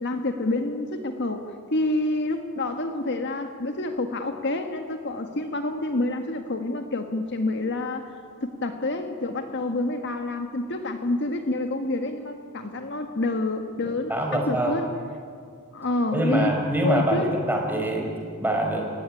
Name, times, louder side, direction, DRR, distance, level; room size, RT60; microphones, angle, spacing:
voice 1, 0.0-8.1 8.4-14.9 15.7-16.5 16.8-17.3, left 2 dB, 55° left, 6 dB, 1.6 m, -28 dB
voice 2, 13.8-14.8 16.1-18.1 18.4-18.8, right 1 dB, 10° right, 1 dB, 4.7 m, -25 dB
29.5 x 16.5 x 9.9 m, 2.3 s
head